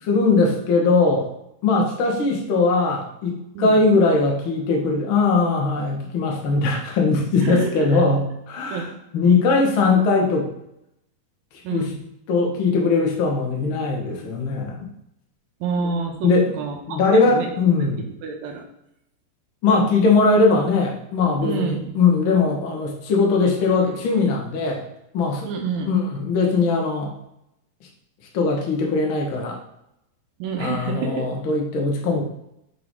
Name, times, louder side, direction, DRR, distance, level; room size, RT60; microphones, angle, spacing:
voice 1, 0.1-1.3 1.6-8.9 9.1-10.5 11.7-11.9 12.3-14.9 16.2-16.5 16.9-18.1 19.6-24.8 25.1-25.5 25.8-27.1 28.3-29.6 30.6-32.2, left 3 dB, 85° left, 0 dB, 1.1 m, -20 dB
voice 2, 7.4-8.0 8.7-8.9 11.6-12.0 15.6-17.5 18.2-18.6 21.4-22.0 25.4-25.9 30.4-31.2, right 5 dB, 80° right, 3 dB, 2.6 m, -28 dB
7.7 x 4.1 x 3.7 m, 0.81 s
omnidirectional pair, 4.3 m